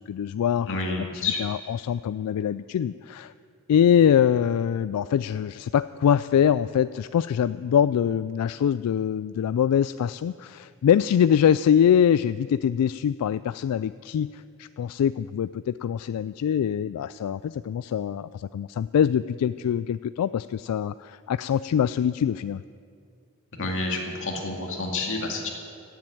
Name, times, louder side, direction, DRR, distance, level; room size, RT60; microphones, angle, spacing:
voice 1, 0.0-3.3 3.7-22.6, left 8 dB, 85° left, 15 dB, 0.3 m, -24 dB
voice 2, 0.7-1.4 23.6-25.5, left 3 dB, 60° left, 0 dB, 2.3 m, -29 dB
16.5 x 7.7 x 8.7 m, 2.3 s
head